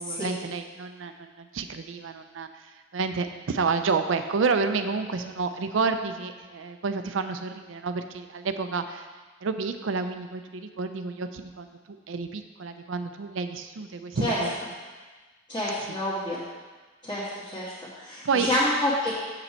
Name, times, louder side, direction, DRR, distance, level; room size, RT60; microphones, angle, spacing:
voice 1, 0.0-9.1 9.4-14.5 18.2-18.5, right 4 dB, 75° right, 8 dB, 0.5 m, -30 dB
voice 2, 15.5-16.4 17.0-19.1, left 1 dB, 20° left, -10 dB, 1.5 m, -28 dB
7.1 x 6.7 x 4.3 m, 1.3 s
head